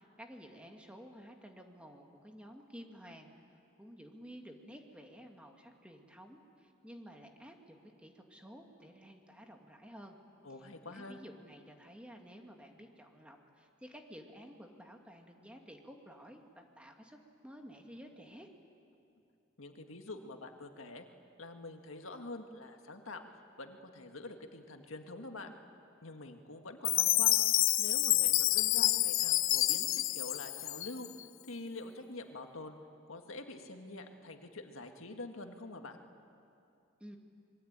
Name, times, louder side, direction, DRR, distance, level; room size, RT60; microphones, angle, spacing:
voice 1, 0.0-10.2 10.6-18.5 37.0-37.2, equal, 5° right, 3 dB, 1.9 m, -53 dB
voice 2, 10.4-11.2 19.6-21.1 21.4-25.5 26.0-27.4 27.8-31.1 31.5-32.8 33.1-36.0, left 2 dB, 90° left, 5 dB, 1.8 m, -46 dB
Chime, 26.8-31.2, left 16 dB, 75° left, 0.5 m, -28 dB
26.0 x 22.0 x 8.9 m, 2.7 s
head